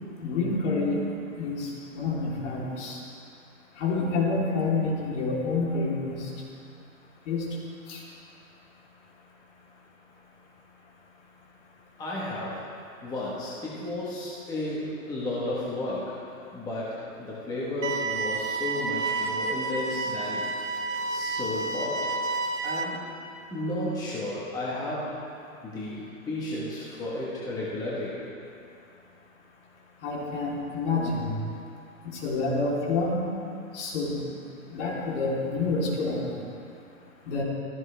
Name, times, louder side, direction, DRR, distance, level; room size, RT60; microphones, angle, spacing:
voice 1, 0.2-1.0 1.4-3.0 3.8-6.3 7.2-7.4 7.9-8.0 30.0-31.3 32.0-33.2 33.7-34.2 34.7-36.3 37.3-37.4, left 3 dB, 55° left, -4 dB, 3.4 m, -28 dB
voice 2, 12.0-12.7 13.0-16.2 16.5-20.4 21.1-22.1 22.6-23.0 23.5-25.2 25.6-28.2, left 1 dB, 10° left, -7 dB, 1.3 m, -33 dB
sound 1, 17.8-22.8, right 3 dB, 60° right, 1.3 m, -30 dB
16.0 x 14.0 x 3.4 m, 2.5 s
hypercardioid pair, 155°, 42 cm